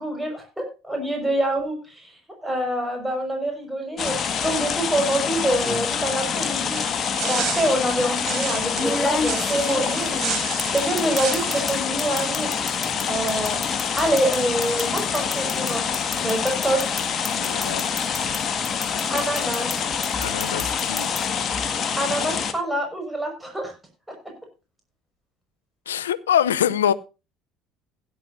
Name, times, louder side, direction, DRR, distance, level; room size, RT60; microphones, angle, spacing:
voice 1, 0.0-2.1 2.4-4.2 4.4-6.8 7.2-10.2 10.7-12.5 13.0-13.6 13.9-15.8 16.2-16.8 19.1-19.7 22.0-23.7, right 1 dB, 5° right, 5.7 m, -26 dB
sound 1, 4.0-22.5, left 7 dB, 40° left, 1.9 m, -26 dB
sound 2, 5.6-5.9 7.1-7.2 8.8-11.7 12.0-18.4 18.6-19.8 20.0-21.2, left 3 dB, 25° left, 3.1 m, -30 dB
sound 3, 6.7-11.7, right 7 dB, 50° right, 4.2 m, -32 dB
voice 2, 17.4-17.9 20.2-21.1 25.9-26.9, left 9 dB, 85° left, 0.6 m, -24 dB
16.5 x 11.0 x 2.7 m
hypercardioid pair, 60°, 0 cm